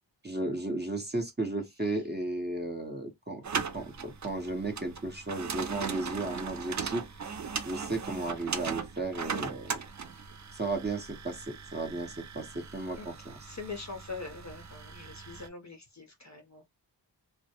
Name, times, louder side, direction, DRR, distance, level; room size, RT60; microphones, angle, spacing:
voice 1, 0.2-7.1 7.6-9.8 10.5-13.4, right 2 dB, 20° right, 0.9 m, -34 dB
sound 1, 3.4-15.5, right 6 dB, 40° right, 0.4 m, -39 dB
voice 2, 13.5-16.7, left 4 dB, 40° left, 0.6 m, -43 dB
2.2 x 2.0 x 2.7 m
wide cardioid pair, 50°, 45 cm